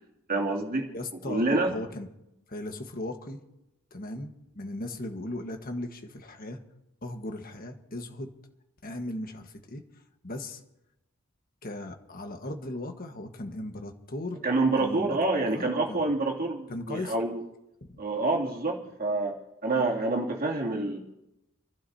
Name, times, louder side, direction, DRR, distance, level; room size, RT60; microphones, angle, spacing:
voice 1, 0.3-0.9 1.3-1.7 14.4-17.4 18.0-21.0, right 2 dB, 45° right, -1 dB, 2.8 m, -27 dB
voice 2, 0.9-2.1 2.5-3.4 3.9-6.6 7.0-8.3 8.8-9.8 10.2-10.6 11.6-14.4 14.8-15.2 15.5-16.0 16.7-17.1 17.9-18.0, left 1 dB, 45° left, 5 dB, 1.5 m, -37 dB
29.5 x 12.0 x 2.8 m, 0.91 s
head